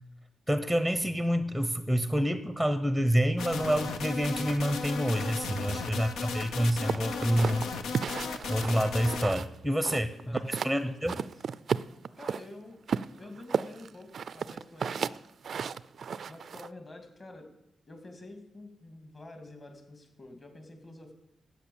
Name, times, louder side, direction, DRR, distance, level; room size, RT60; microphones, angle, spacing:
voice 1, 0.5-7.7 8.5-11.2, equal, 5° left, 10 dB, 0.8 m, -28 dB
sound 1, 3.4-9.3, left 5 dB, 90° left, 1.0 m, -35 dB
sound 2, 6.9-9.6 9.8-10.8 11.1-12.4 12.9-16.7, right 6 dB, 60° right, 0.4 m, -33 dB
voice 2, 9.9-11.3 12.2-12.8 13.2-15.0 16.3-17.5 17.9-21.1, left 2 dB, 30° left, 5 dB, 2.5 m, -48 dB
12.5 x 8.5 x 7.1 m, 0.83 s
cardioid pair, 85°, 0 cm